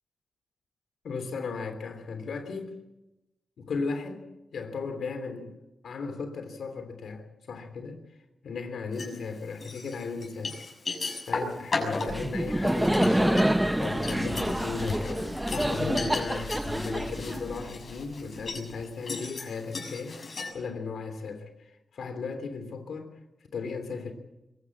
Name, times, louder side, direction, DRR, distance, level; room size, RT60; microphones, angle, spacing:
voice 1, 1.0-2.8 3.6-5.5 5.8-8.0 8.4-10.6 11.2-23.1 23.5-24.1, left 4 dB, 85° left, 3.1 m, -36 dB
sound 1, 8.9-9.2 9.6-20.5, left 3 dB, 55° left, 6.5 m, -36 dB
Laughter, 12.1-17.9, right 1 dB, 10° right, 0.7 m, -27 dB
22.5 x 16.0 x 8.5 m
cardioid pair, 60°, 0 cm